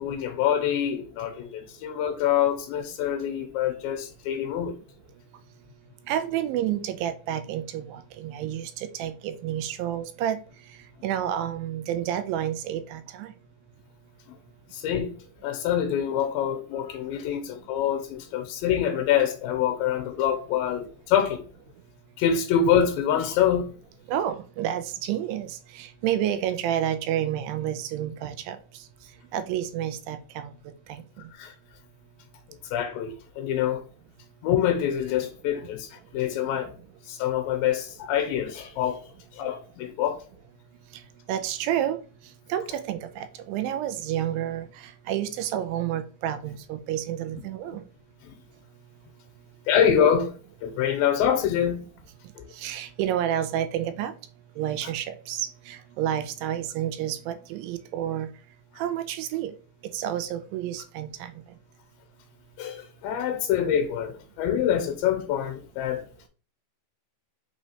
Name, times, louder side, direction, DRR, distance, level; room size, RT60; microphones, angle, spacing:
voice 1, 0.0-4.8 14.3-14.4 14.7-15.1 15.4-21.4 22.2-23.7 31.3-31.5 32.7-33.8 34.4-36.7 37.0-39.0 39.3-40.2 49.7-50.3 50.6-51.8 52.4-52.5 62.6-66.0, left 9 dB, 85° left, 2.3 m, -25 dB
voice 2, 6.1-10.4 11.0-13.3 24.1-28.6 29.3-30.5 30.9-31.0 41.3-42.0 42.5-44.7 45.1-47.8 52.6-54.1 54.6-58.3 58.8-59.5 59.9-61.3, right 11 dB, 85° right, 2.3 m, -29 dB
5.8 x 3.1 x 2.8 m
omnidirectional pair, 4.1 m